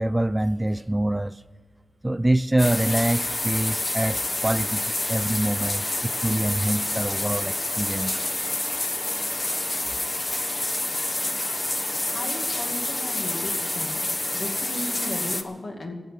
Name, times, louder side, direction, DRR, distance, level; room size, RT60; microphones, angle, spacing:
voice 1, 0.0-1.4 2.0-8.3, right 1 dB, 15° right, 15 dB, 0.4 m, -25 dB
sound 1, 2.6-15.4, left 2 dB, 35° left, 1.1 m, -28 dB
voice 2, 12.1-14.0 14.3-15.9, left 1 dB, 65° left, 1 dB, 2.4 m, -35 dB
14.5 x 8.0 x 9.4 m, 1.4 s
wide cardioid pair, 90°, 0 cm